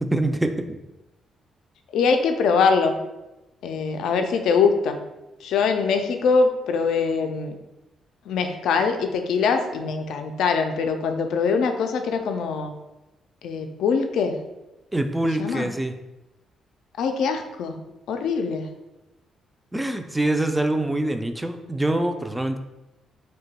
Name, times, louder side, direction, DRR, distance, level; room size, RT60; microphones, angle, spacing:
voice 1, 0.1-0.8 14.9-15.9 19.7-22.6, right 1 dB, 10° right, 7 dB, 0.3 m, -24 dB
voice 2, 1.9-3.0 3.6-5.0 5.4-7.6 8.3-12.7 13.4-14.4 15.4-15.7 17.0-17.8 18.1-18.7, left 5 dB, 80° left, 6 dB, 0.3 m, -23 dB
2.8 x 2.2 x 4.0 m, 0.98 s
cardioid pair, 90°, 0 cm